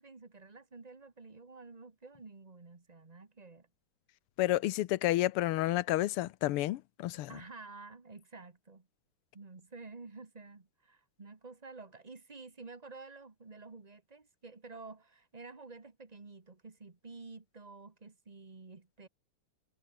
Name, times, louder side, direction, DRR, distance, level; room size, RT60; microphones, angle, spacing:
voice 1, 0.0-3.7 7.3-8.9 9.3-19.1, right 3 dB, 20° right, 1.4 m, -50 dB
voice 2, 4.4-7.3, left 15 dB, 85° left, 1.7 m, -30 dB
omnidirectional pair, 2.4 m